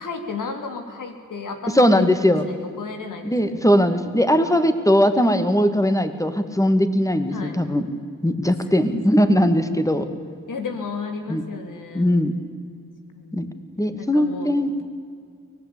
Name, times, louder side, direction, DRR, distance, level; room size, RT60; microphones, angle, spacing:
voice 1, 0.0-3.7 7.3-7.6 8.7-9.7 10.5-12.1 13.1-13.5 14.0-14.6, left 4 dB, 90° left, 5 dB, 3.1 m, -34 dB
voice 2, 1.7-2.5 3.3-7.9 8.2-10.1 11.3-11.4 11.9-12.3 13.3-13.5 13.8-14.8, equal, 10° left, 9 dB, 2.3 m, -19 dB
24.0 x 18.5 x 8.7 m, 2.2 s
cardioid pair, 55°, 31 cm